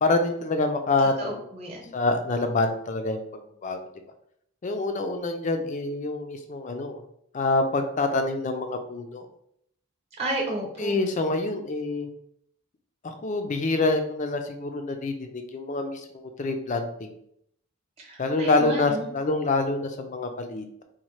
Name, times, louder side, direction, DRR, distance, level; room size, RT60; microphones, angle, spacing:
voice 1, 0.0-1.4 1.9-3.8 4.6-7.0 7.3-9.3 10.8-12.1 13.0-16.1 16.4-17.2 18.2-20.8, left 2 dB, 35° left, 6 dB, 0.4 m, -26 dB
voice 2, 1.2-1.8 10.2-10.9 18.0-19.1, right 1 dB, 30° right, -2 dB, 0.9 m, -32 dB
4.1 x 2.1 x 3.1 m, 0.72 s
head